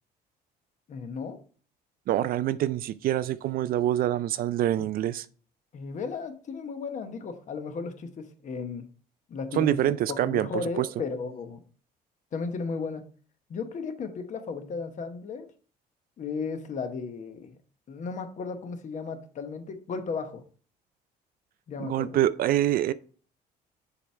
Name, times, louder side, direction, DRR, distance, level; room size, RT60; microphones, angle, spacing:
voice 1, 0.9-1.4 5.7-8.9 9.3-11.6 12.3-13.1 13.5-15.5 16.2-17.6 17.9-20.4 21.7-22.2, left 4 dB, 45° left, 1.0 m, -35 dB
voice 2, 2.1-5.3 9.5-10.9 21.8-22.9, right 12 dB, 60° right, 0.4 m, -26 dB
6.9 x 3.6 x 4.4 m
cardioid pair, 110°, 17 cm